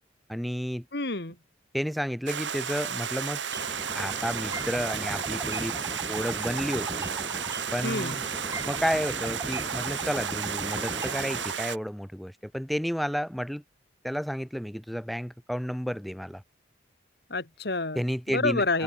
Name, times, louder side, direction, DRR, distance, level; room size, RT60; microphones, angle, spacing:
voice 1, 0.3-0.9 1.7-3.4 3.9-5.8 6.1-7.1 7.7-8.2 8.6-13.6 14.0-16.4 17.9-18.8, equal, ahead, 1.3 m, -31 dB
voice 2, 0.9-1.4 7.8-8.2 17.3-18.8, left 3 dB, 55° left, 2.1 m, -29 dB
Stream, 2.3-11.8, right 7 dB, 75° right, 6.2 m, -33 dB
sound 1, 3.5-11.5, right 1 dB, 15° right, 6.5 m, -37 dB
open air
head